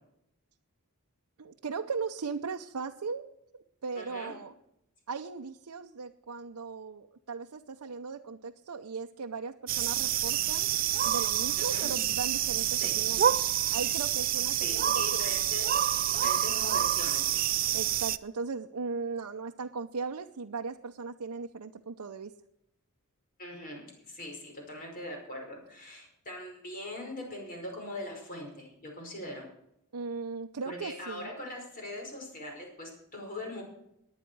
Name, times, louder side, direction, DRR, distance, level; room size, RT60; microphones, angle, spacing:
voice 1, 1.4-3.2 3.5-4.5 5.1-13.4 13.7-15.2 16.4-16.5 17.7-22.3 29.9-31.3, right 4 dB, 90° right, 3 dB, 0.7 m, -38 dB
voice 2, 4.0-4.3 11.6-11.9 12.7-13.0 14.6-15.7 16.1-17.4 23.4-29.5 30.7-33.6, left 1 dB, 40° left, 1 dB, 5.2 m, -41 dB
sound 1, 9.7-18.2, right 11 dB, 40° right, 0.4 m, -28 dB
18.5 x 10.5 x 4.7 m, 0.80 s
head